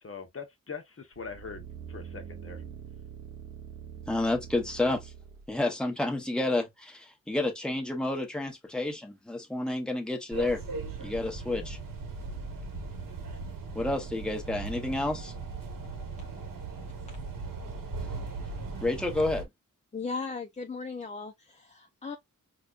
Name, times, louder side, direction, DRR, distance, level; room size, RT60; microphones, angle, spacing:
voice 1, 0.0-2.6, left 5 dB, 40° left, 0.8 m, -42 dB
sound 1, 1.2-5.5 6.0-6.1, right 8 dB, 45° right, 0.5 m, -44 dB
voice 2, 4.1-5.1 5.5-10.6 11.0-11.8 13.7-15.3 18.8-19.5, left 2 dB, 5° left, 0.9 m, -30 dB
sound 2, 10.3-19.4, right 3 dB, 80° right, 1.1 m, -38 dB
voice 3, 19.9-22.2, left 4 dB, 20° left, 0.4 m, -37 dB
4.9 x 2.2 x 2.3 m
wide cardioid pair, 130°, 33 cm